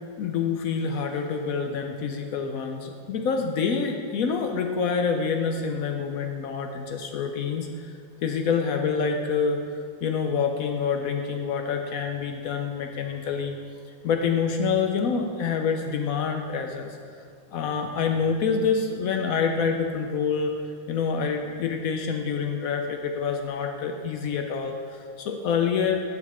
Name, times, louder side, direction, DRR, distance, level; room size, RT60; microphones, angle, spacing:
voice 1, 0.2-7.9 8.2-9.6 10.0-13.6 14.0-17.0 17.5-20.6 20.9-26.0, left 6 dB, 70° left, 4 dB, 0.8 m, -27 dB
9.2 x 7.0 x 4.2 m, 2.1 s
omnidirectional pair, 2.0 m